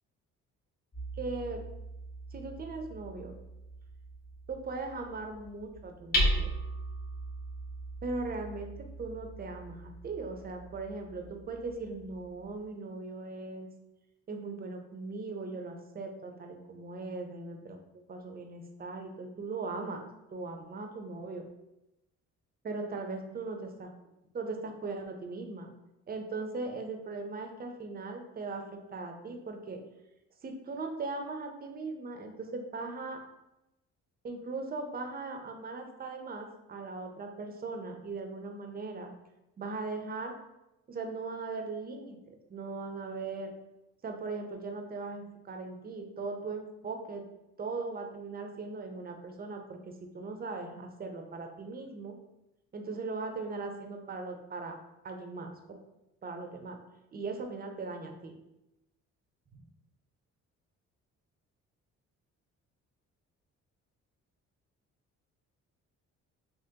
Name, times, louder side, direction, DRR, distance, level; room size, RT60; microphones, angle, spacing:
Hammer, 0.9-12.6, right 1 dB, 30° left, 1.1 m, -38 dB
voice 1, 1.2-1.6 2.3-3.4 4.5-6.5 8.0-13.7 14.3-17.8 18.1-20.0 20.3-21.5 22.6-23.9 24.3-25.7 26.1-28.6 28.9-29.8 30.4-33.2 34.2-39.1 39.6-40.3 40.9-43.5 44.0-47.2 47.6-49.8 50.1-52.1 52.7-54.7 55.0-55.8 56.2-56.8 57.1-58.3, right 3 dB, 30° right, 3 dB, 0.6 m, -39 dB
3.7 x 2.9 x 2.8 m, 0.92 s
cardioid pair, 90°, 30 cm